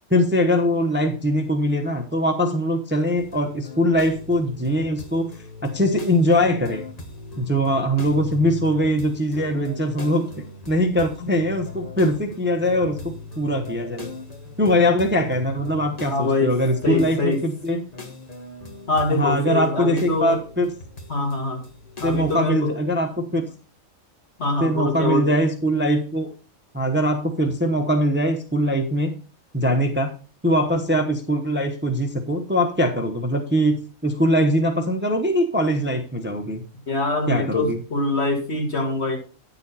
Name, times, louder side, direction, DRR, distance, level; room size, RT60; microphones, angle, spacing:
voice 1, 0.1-5.3 5.7-6.8 7.4-14.1 14.6-17.8 19.1-20.7 22.0-23.4 24.6-26.3 26.7-29.1 29.5-30.1 30.4-36.6 37.3-37.8, equal, 10° right, 4 dB, 0.8 m, -22 dB
sound 1, 3.2-22.5, left 3 dB, 30° left, 1.4 m, -39 dB
voice 2, 16.0-16.5 16.8-17.4 18.9-20.4 21.1-21.6 22.0-22.8 24.4-25.4 36.9-39.2, left 2 dB, 55° left, 2 dB, 2.2 m, -24 dB
10.0 x 6.7 x 4.1 m, 0.36 s
omnidirectional pair, 1.4 m